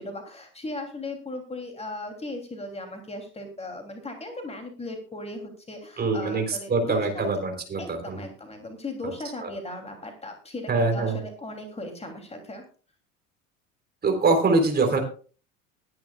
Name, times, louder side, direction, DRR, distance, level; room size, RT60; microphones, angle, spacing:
voice 1, 0.0-7.3 7.8-12.6, left 2 dB, 15° left, 4 dB, 3.1 m, -37 dB
voice 2, 6.0-8.2 9.4-9.5 10.7-11.2 14.0-15.0, right 3 dB, 25° right, 4 dB, 3.8 m, -24 dB
21.0 x 10.5 x 2.4 m, 0.38 s
figure-of-eight pair, 80°, 41 cm